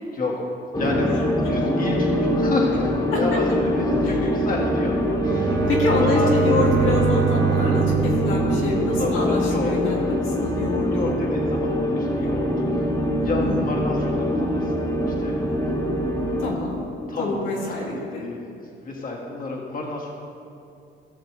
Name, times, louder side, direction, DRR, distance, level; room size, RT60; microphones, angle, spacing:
sound 1, 0.7-16.5, equal, 20° left, 1.6 m, -23 dB
voice 1, 0.8-1.1 1.4-4.9 5.2-5.7 6.0-6.6 8.9-9.7 10.8-12.8 13.2-14.7 15.0-15.5 17.1-20.1, left 2 dB, 45° left, -2 dB, 1.6 m, -30 dB
Bowed string instrument, 5.2-9.6, right 12 dB, 65° right, 0.6 m, -26 dB
voice 2, 5.5-11.1 13.4-13.6 16.4-16.9 17.2-18.2, left 2 dB, 85° left, -4 dB, 2.0 m, -26 dB
16.0 x 6.5 x 3.1 m, 2.6 s
cardioid pair, 90°, 20 cm